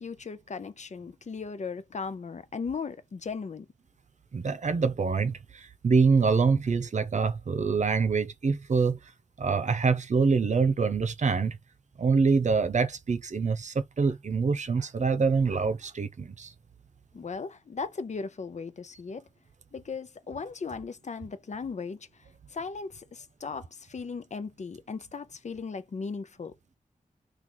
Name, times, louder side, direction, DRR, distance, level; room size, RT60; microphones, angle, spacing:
voice 1, 0.0-3.7 17.1-19.3 19.7-22.1 22.5-26.5, left 5 dB, 60° left, 0.6 m, -37 dB
voice 2, 4.3-9.0 9.4-11.6 12.0-16.5, right 5 dB, 60° right, 0.6 m, -25 dB
3.0 x 2.4 x 3.8 m
cardioid pair, 40°, 14 cm